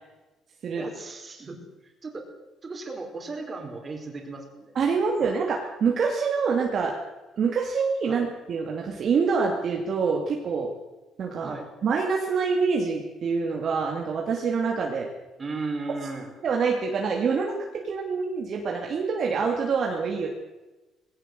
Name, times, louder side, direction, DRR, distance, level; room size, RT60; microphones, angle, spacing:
voice 1, 0.7-1.6 1.8-2.2 2.6-4.7 8.1-8.3 11.4-11.7 15.4-16.3, right 3 dB, 25° right, 4 dB, 4.6 m, -36 dB
voice 2, 4.7-7.0 7.4-10.7 11.2-11.6 11.8-15.1 16.4-20.3, right 5 dB, 50° right, 1 dB, 2.7 m, -26 dB
19.5 x 17.0 x 7.8 m, 1.1 s
cardioid pair, 125°, 0 cm